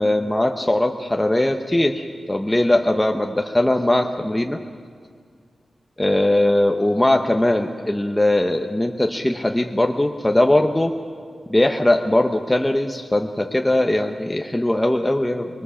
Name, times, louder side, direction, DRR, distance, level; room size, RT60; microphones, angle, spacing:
voice 1, 0.0-4.6 6.0-10.9 11.5-15.6, left 1 dB, 10° left, 3 dB, 0.8 m, -20 dB
24.5 x 22.5 x 7.0 m, 2.1 s
wide cardioid pair, 140°, 0 cm